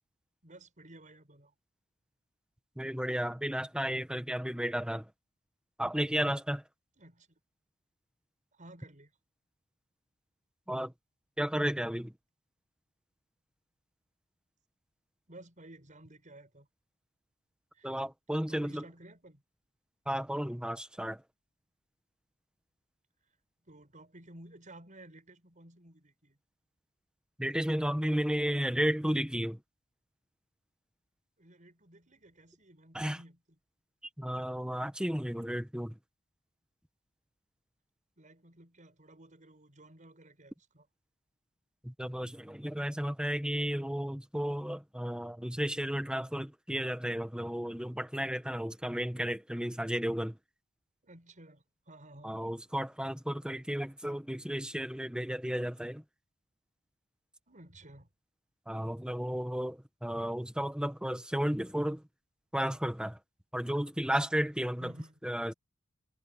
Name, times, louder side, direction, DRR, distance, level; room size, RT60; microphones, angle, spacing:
voice 1, 0.4-1.5 7.0-7.4 8.5-9.1 15.3-16.7 17.7-18.0 18.3-19.4 23.6-26.4 31.4-33.6 38.2-40.9 51.0-52.4 57.5-58.1 64.8-65.2, right 1 dB, 40° right, 7.4 m, -54 dB
voice 2, 2.8-5.0 5.8-6.6 10.7-10.9 11.4-12.1 17.8-18.8 20.1-21.2 27.4-29.6 32.9-33.2 34.2-35.9 41.8-50.4 52.2-56.0 58.7-62.0 62.5-63.2 63.5-64.9 65.2-65.5, equal, 5° right, 1.5 m, -33 dB
head